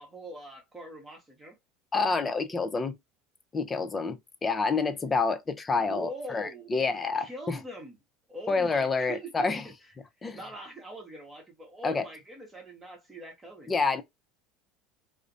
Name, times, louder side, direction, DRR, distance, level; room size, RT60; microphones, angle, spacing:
voice 1, 0.0-1.6 5.7-6.7 7.2-8.0 8.3-9.7 10.3-13.7, right 1 dB, 20° right, 1.0 m, -43 dB
voice 2, 1.9-3.0 3.5-7.6 8.5-9.7 10.2-10.4 11.8-12.0 13.7-14.0, left 4 dB, 25° left, 0.6 m, -28 dB
2.4 x 2.1 x 2.6 m
hypercardioid pair, 80°, 0 cm